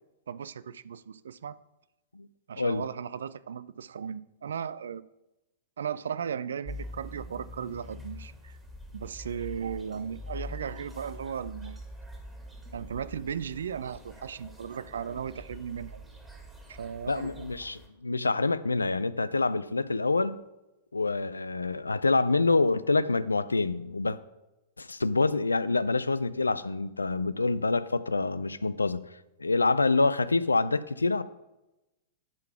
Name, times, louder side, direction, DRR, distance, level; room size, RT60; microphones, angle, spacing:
voice 1, 0.3-1.6 2.5-5.0 5.8-8.5 8.9-11.8 12.7-16.1 16.7-17.7, right 7 dB, 70° right, 0.4 m, -36 dB
voice 2, 2.6-2.9 17.1-20.4 20.9-24.2 24.8-29.0 29.4-31.2, left 3 dB, 85° left, 0.4 m, -26 dB
sound 1, 6.6-17.9, left 1 dB, 10° right, 1.9 m, -44 dB
10.5 x 3.9 x 5.8 m
figure-of-eight pair, 105°, 0 cm